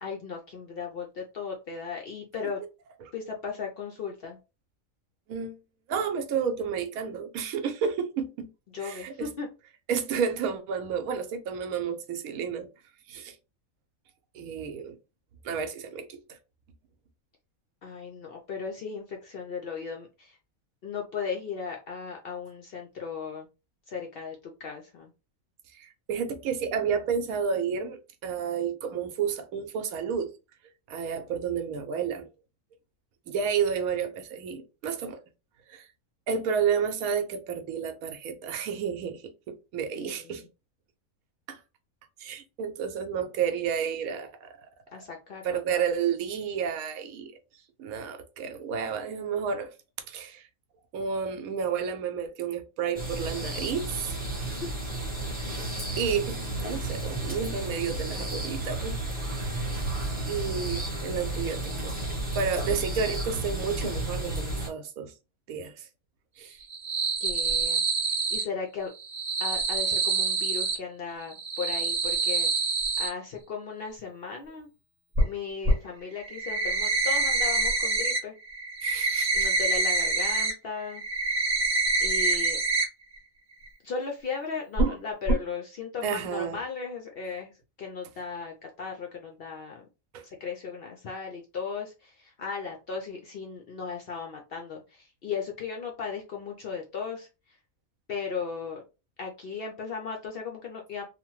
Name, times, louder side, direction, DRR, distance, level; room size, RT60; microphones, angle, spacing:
voice 1, 0.0-2.6 3.1-4.4 8.7-9.5 17.8-20.4 20.8-23.5 23.9-25.1 40.0-40.5 44.9-45.8 67.2-68.9 69.4-74.7 75.2-78.3 79.3-81.0 82.0-82.6 83.8-87.5 87.8-89.9 90.2-97.3 98.1-98.8 99.2-101.0, left 5 dB, 65° left, 0.6 m, -36 dB
voice 2, 5.9-8.5 8.8-9.3 9.9-12.7 13.1-13.4 14.3-15.0 15.4-16.4 25.7-30.3 30.9-32.3 33.3-35.2 35.7-35.9 36.3-40.4 41.5-41.6 42.2-44.7 44.9-45.0 45.4-47.4 47.8-49.7 50.1-50.5 50.9-54.2 56.0-59.0 59.4-59.7 60.2-61.9 62.3-65.1 65.5-65.9 66.4-66.6 78.8-79.5 86.0-86.6 90.1-90.2, right 6 dB, 80° right, 1.1 m, -31 dB
sound 1, 52.9-64.7, right 2 dB, 10° right, 0.7 m, -32 dB
sound 2, 66.6-68.4 69.0-70.8 71.3-73.1 75.1-75.2 75.6-75.7 76.2-78.2 78.5-80.5 80.9-82.8 83.2-83.3 83.7-83.8 84.8-84.9 85.3-85.4, right 3 dB, 40° right, 0.9 m, -26 dB
2.9 x 2.1 x 3.0 m
omnidirectional pair, 1.5 m